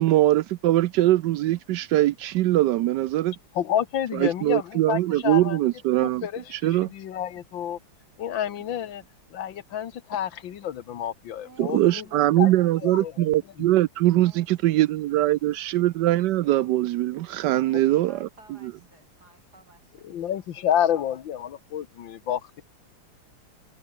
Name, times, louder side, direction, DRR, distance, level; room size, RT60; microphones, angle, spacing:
voice 1, 0.0-3.4 4.1-6.9 11.6-18.3, right 15 dB, 75° right, 1.1 m, -22 dB
voice 2, 3.6-5.6 6.0-7.8 8.2-9.0 9.3-12.1 12.4-12.5 12.8-13.4 17.7-17.8 20.0-22.6, left 10 dB, 85° left, 1.9 m, -29 dB
voice 3, 11.4-13.1 14.2-15.0 17.4-21.0, right 2 dB, 55° right, 7.2 m, -54 dB
omnidirectional pair, 2.0 m